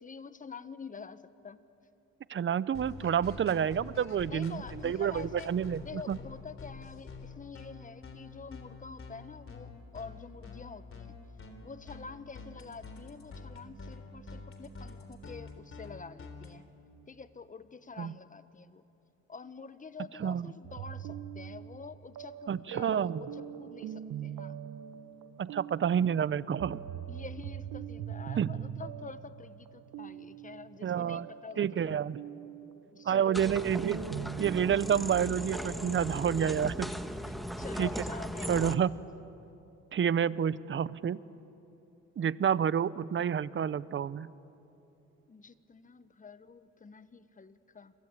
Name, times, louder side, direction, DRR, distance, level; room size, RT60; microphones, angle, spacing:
voice 1, 0.0-1.6 4.3-5.5 5.8-11.2 11.6-16.7 17.1-18.8 19.3-24.6 27.1-32.0 32.9-33.6 36.9-39.2 45.3-47.9, left 5 dB, 25° left, 13 dB, 1.2 m, -47 dB
voice 2, 2.3-6.2 18.0-18.1 20.2-20.5 22.5-23.2 25.4-26.8 28.4-28.5 30.8-31.3 31.6-32.2 33.0-34.0 34.4-36.9 37.8-37.9 38.5-39.0 39.9-41.2 42.2-44.3, right 8 dB, 40° right, 18 dB, 0.7 m, -29 dB
sound 1, 2.7-16.5, left 4 dB, 45° left, 3.5 m, -46 dB
sound 2, 20.6-36.1, right 10 dB, 75° right, 1.1 m, -42 dB
sound 3, 33.3-38.8, equal, ahead, 1.3 m, -38 dB
29.5 x 22.5 x 8.4 m, 2.9 s
cardioid pair, 90°, 30 cm